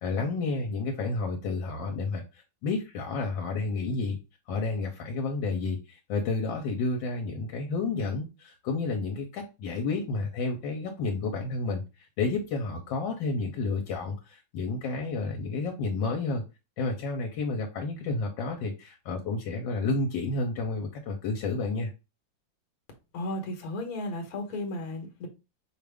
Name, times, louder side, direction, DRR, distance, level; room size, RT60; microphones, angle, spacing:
voice 1, 0.0-4.2 4.5-16.4 16.8-21.9, left 3 dB, 80° left, 1.4 m, -31 dB
voice 2, 23.1-25.3, left 1 dB, 55° left, 1.4 m, -34 dB
4.9 x 2.5 x 3.3 m
omnidirectional pair, 2.0 m